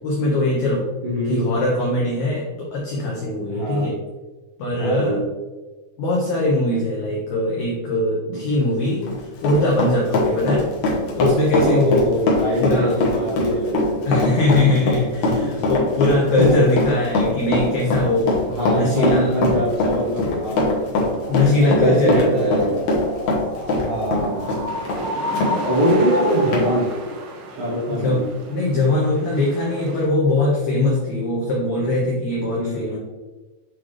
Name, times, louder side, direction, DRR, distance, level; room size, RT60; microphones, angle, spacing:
voice 1, 0.0-0.8 1.2-4.0 4.6-5.2 6.0-10.7 11.1-12.1 12.6-13.0 14.0-18.3 18.7-19.3 21.3-22.6 27.9-28.2 28.5-33.0, left 2 dB, 85° left, -3 dB, 1.6 m, -21 dB
voice 2, 1.0-1.4 3.5-3.9 4.7-5.2 8.3-8.4 11.6-14.2 15.4-15.5 16.4-16.7 18.5-20.7 21.6-22.8 23.8-24.6 25.6-26.9 27.6-28.2 32.6-33.0, right 1 dB, 60° right, -5 dB, 2.5 m, -23 dB
Run, 8.9-25.5 25.9-26.0 26.5-26.7, left 2 dB, 65° left, 1.9 m, -22 dB
sound 1, 21.1-26.9, left 1 dB, 45° left, 1.5 m, -30 dB
sound 2, 24.7-30.0, right 2 dB, 80° right, 2.9 m, -35 dB
7.6 x 3.8 x 3.2 m, 1.2 s
omnidirectional pair, 4.7 m